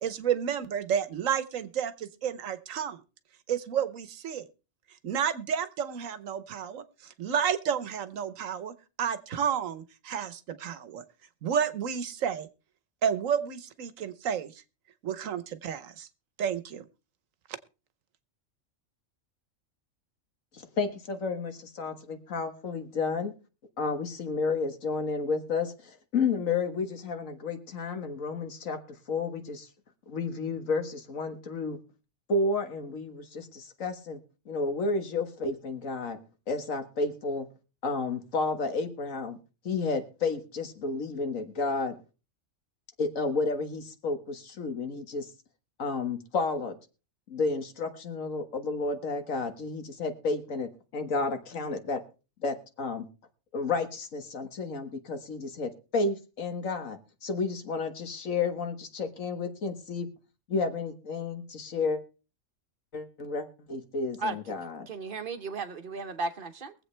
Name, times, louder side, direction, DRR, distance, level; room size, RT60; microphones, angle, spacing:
voice 1, 0.0-3.0 3.5-4.5 5.0-6.8 7.2-11.0 11.4-12.5 13.0-14.5 15.0-16.1 16.4-16.8, right 8 dB, 80° right, 1.3 m, -31 dB
voice 2, 20.5-23.3 23.8-28.8 29.1-29.7 30.1-31.8 32.3-34.2 34.5-36.2 36.5-37.5 37.8-39.4 39.7-41.9 43.0-45.3 45.8-46.7 47.3-52.0 52.4-53.0 53.5-60.1 60.5-62.0 62.9-64.9, left 3 dB, 85° left, 1.8 m, -31 dB
voice 3, 64.9-66.7, right 3 dB, 45° right, 0.9 m, -34 dB
22.5 x 7.9 x 3.3 m
omnidirectional pair, 1.3 m